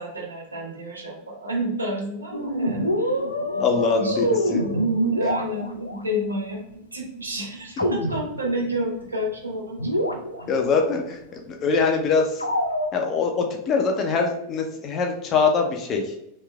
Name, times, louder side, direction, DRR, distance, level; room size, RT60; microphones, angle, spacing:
voice 1, 0.0-3.2 3.5-4.8 5.1-9.9 10.3-10.4, equal, 75° right, 0 dB, 0.7 m, -31 dB
sound 1, 2.3-6.0 7.8-8.7 9.0-9.1 9.5-9.6 9.8-10.7 12.4-12.9, equal, 85° left, 0.3 m, -25 dB
voice 2, 3.6-4.6 10.5-11.2 11.5-12.3 12.9-16.0, left 5 dB, 30° left, 3 dB, 0.5 m, -23 dB
3.2 x 3.1 x 2.2 m, 0.78 s
figure-of-eight pair, 90°, 0 cm